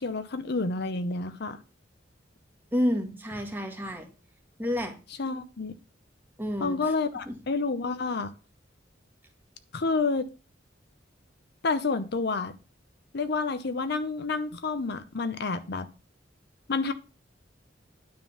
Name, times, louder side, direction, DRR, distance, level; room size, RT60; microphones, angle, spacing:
voice 1, 0.0-1.6 5.2-5.7 6.6-8.3 9.7-10.3 11.6-12.5 13.1-15.9 16.7-16.9, left 4 dB, 60° left, 0.7 m, -29 dB
voice 2, 2.7-4.1 4.6-4.9 6.4-6.8 7.2-7.4, equal, 10° right, 1.6 m, -29 dB
9.7 x 3.7 x 7.0 m
head